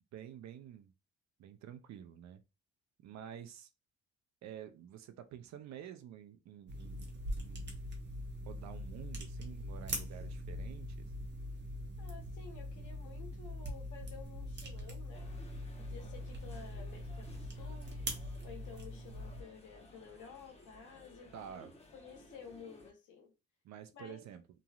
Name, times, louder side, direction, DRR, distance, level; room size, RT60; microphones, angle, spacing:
voice 1, 0.1-0.9 1.4-2.4 3.0-3.7 4.4-7.1 7.4-7.8 8.4-11.1 21.3-21.7 23.6-24.4, right 9 dB, 65° right, 0.5 m, -49 dB
Gun Being Loaded, 6.7-19.4, equal, 35° right, 1.0 m, -42 dB
voice 2, 12.0-15.4 15.8-18.0 18.4-21.7 21.9-23.3 23.9-24.3, left 6 dB, 80° left, 1.0 m, -53 dB
sound 1, 15.1-22.9, left 2 dB, 20° left, 1.0 m, -58 dB
3.0 x 2.6 x 2.3 m
cardioid pair, 90°, 30 cm